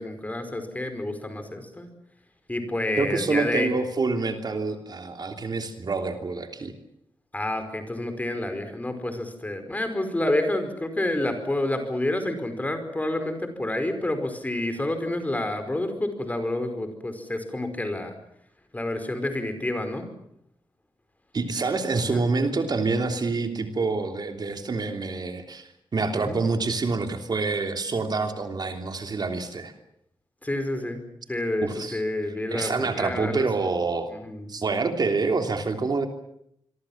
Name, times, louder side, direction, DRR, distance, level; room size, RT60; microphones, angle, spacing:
voice 1, 0.0-1.9 2.5-3.7 7.3-18.1 18.7-20.1 22.1-22.2 26.3-26.4 30.4-31.0 31.3-33.4 34.2-34.5, left 1 dB, 15° left, 8 dB, 5.0 m, -29 dB
voice 2, 3.0-6.7 21.3-29.7 31.6-32.0 32.5-34.1 34.5-36.1, right 3 dB, 50° right, 6 dB, 3.2 m, -27 dB
26.0 x 24.0 x 7.3 m, 0.74 s
wide cardioid pair, 125°, 9 cm